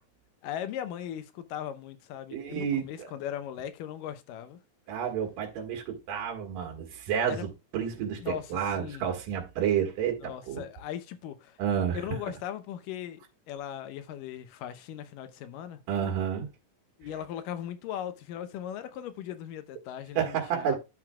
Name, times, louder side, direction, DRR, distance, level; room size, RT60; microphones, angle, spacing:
voice 1, 0.4-4.6 7.3-7.4 8.2-9.0 10.2-11.6 11.9-15.8 17.0-20.8, left 10 dB, 85° left, 2.5 m, -38 dB
voice 2, 2.3-2.9 4.9-10.6 11.6-12.0 15.9-16.5 20.2-20.8, right 8 dB, 85° right, 3.3 m, -30 dB
11.0 x 7.5 x 2.3 m
omnidirectional pair, 3.8 m